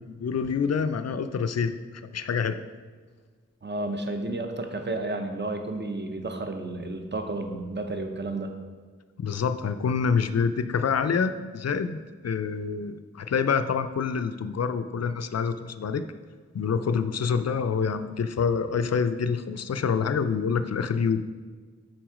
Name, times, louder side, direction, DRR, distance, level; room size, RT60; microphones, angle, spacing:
voice 1, 0.0-2.6 9.2-12.0 12.2-16.0 16.5-21.2, left 6 dB, 60° left, 10 dB, 0.4 m, -27 dB
voice 2, 3.6-8.5, right 2 dB, 35° right, 5 dB, 0.7 m, -32 dB
6.1 x 4.6 x 4.9 m, 1.5 s
wide cardioid pair, 50°, 30 cm